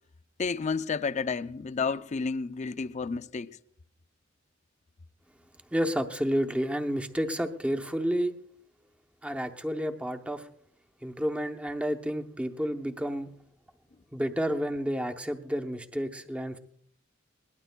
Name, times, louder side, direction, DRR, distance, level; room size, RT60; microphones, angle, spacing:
voice 1, 0.4-3.5, left 5 dB, 35° left, 0.4 m, -31 dB
voice 2, 5.7-8.3 9.2-10.5 11.0-13.3 14.1-16.6, equal, 5° right, 0.7 m, -30 dB
21.5 x 19.0 x 2.2 m
head